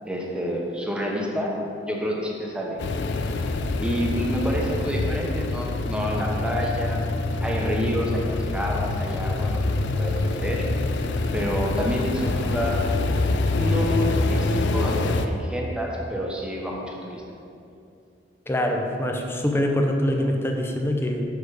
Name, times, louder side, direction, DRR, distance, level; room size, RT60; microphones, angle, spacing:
voice 1, 0.0-1.5 1.8-2.8 3.8-7.0 7.4-10.7 11.3-12.8 13.5-17.2, equal, 5° right, -2 dB, 0.9 m, -28 dB
sound 1, 2.8-15.3, left 2 dB, 80° left, 0.4 m, -25 dB
voice 2, 18.5-21.3, left 1 dB, 15° left, 2 dB, 0.5 m, -24 dB
6.6 x 4.9 x 4.8 m, 2.6 s
head